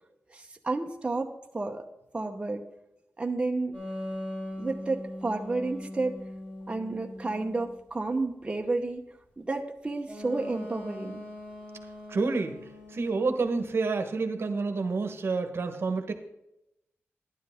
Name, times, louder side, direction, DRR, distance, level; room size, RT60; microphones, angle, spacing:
voice 1, 0.3-1.8 2.1-2.6 3.2-3.7 4.6-6.2 6.7-9.0 9.4-11.2, right 3 dB, 20° right, 2 dB, 1.0 m, -31 dB
sound 1, 3.7-7.7 10.0-13.8, left 1 dB, 25° left, 5.0 m, -41 dB
voice 2, 12.1-12.6 12.9-16.1, right 4 dB, 60° right, 6 dB, 1.2 m, -28 dB
12.5 x 11.0 x 3.6 m, 0.86 s
wide cardioid pair, 125°, 5 cm